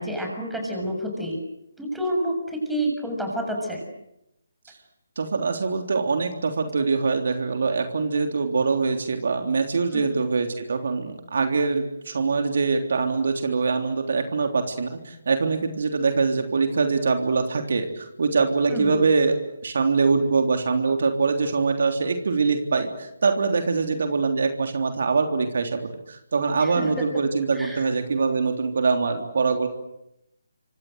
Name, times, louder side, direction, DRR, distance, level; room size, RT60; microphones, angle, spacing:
voice 1, 0.0-1.4 1.8-3.8 9.9-10.0 18.7-18.9 26.6-27.0 27.5-27.8, equal, 5° right, 1 dB, 7.0 m, -29 dB
voice 2, 5.1-25.8 26.1-29.7, right 4 dB, 60° right, 5 dB, 3.4 m, -23 dB
27.5 x 25.5 x 8.1 m, 0.83 s
figure-of-eight pair, 150°, 0 cm